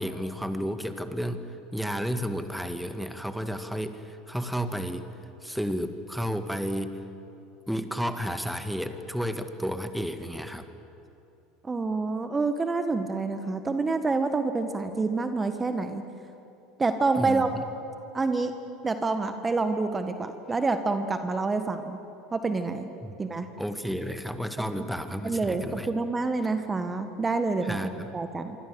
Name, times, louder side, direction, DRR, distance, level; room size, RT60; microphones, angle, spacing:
voice 1, 0.0-1.5 1.7-5.1 5.4-7.0 7.7-10.7 17.2-17.4 23.0-23.2 23.6-25.9 27.7-28.1, equal, ahead, 9 dB, 1.9 m, -32 dB
voice 2, 11.6-16.0 16.8-17.5 18.1-18.5 18.8-22.0 22.3-22.9 23.2-23.5 25.2-27.8 28.1-28.6, right 3 dB, 20° right, 8 dB, 1.6 m, -27 dB
26.0 x 25.0 x 8.1 m, 2.9 s
hypercardioid pair, 75°, 0 cm